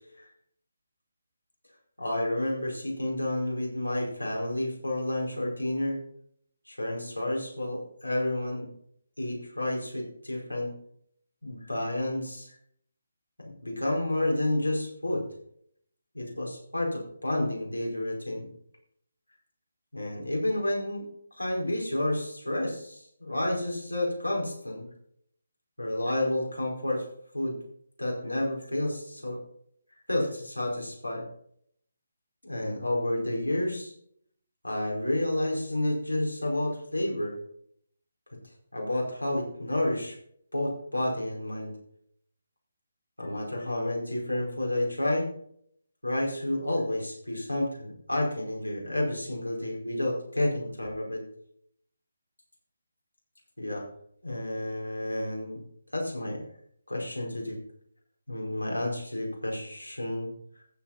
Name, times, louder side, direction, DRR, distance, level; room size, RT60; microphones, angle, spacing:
voice 1, 2.0-6.0 6.7-8.7 9.2-10.7 11.4-12.6 13.6-15.3 16.1-18.5 19.9-24.9 25.8-27.0 27.3-27.6 28.0-29.4 30.1-31.2 32.4-33.9 34.6-37.4 38.7-40.2 40.5-41.7 43.2-45.3 46.0-51.2 53.6-53.8 54.2-55.6 55.9-56.5 56.9-57.6 58.3-60.3, left 1 dB, 90° left, -1 dB, 5.2 m, -30 dB
14.5 x 7.7 x 4.4 m, 0.67 s
figure-of-eight pair, 150°, 0 cm